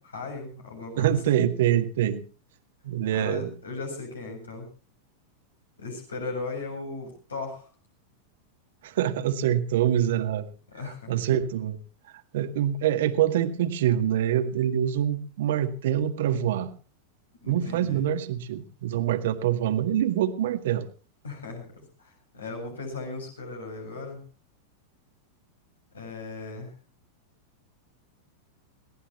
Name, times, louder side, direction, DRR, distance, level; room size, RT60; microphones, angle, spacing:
voice 1, 0.0-1.3 3.1-4.7 5.8-7.7 10.7-11.1 17.4-18.0 21.2-24.2 25.9-26.7, left 3 dB, 70° left, 3 dB, 7.9 m, -37 dB
voice 2, 1.0-2.2 2.8-3.5 8.8-10.5 10.8-11.8 12.3-16.7 17.5-20.9, right 10 dB, 55° right, 7 dB, 1.8 m, -25 dB
22.0 x 18.0 x 3.1 m, 0.36 s
figure-of-eight pair, 90°, 0 cm